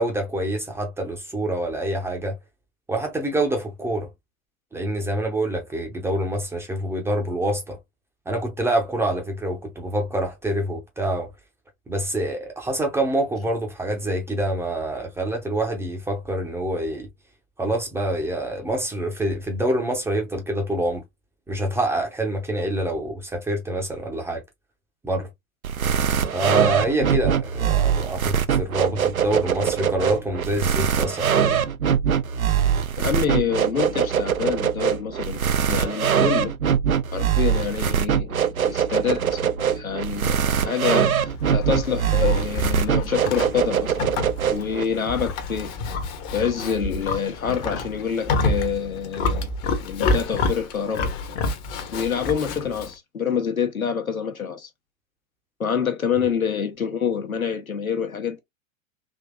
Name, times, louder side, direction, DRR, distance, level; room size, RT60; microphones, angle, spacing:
voice 1, 0.0-2.4 2.9-4.1 4.7-7.8 8.3-11.3 11.9-17.1 17.6-21.0 21.5-24.4 25.0-25.3 26.3-31.6, right 1 dB, 5° right, 0.6 m, -26 dB
sound 1, 25.6-44.8, right 8 dB, 85° right, 0.6 m, -23 dB
voice 2, 33.0-35.4 35.7-36.5 37.1-38.4 38.7-44.2 44.5-45.8 46.3-49.5 49.8-51.1 51.9-54.7 55.6-58.4, left 7 dB, 85° left, 1.0 m, -26 dB
Livestock farm animals working animals, 41.3-52.9, left 3 dB, 30° left, 0.8 m, -28 dB
3.6 x 2.8 x 2.4 m
figure-of-eight pair, 105°, 41 cm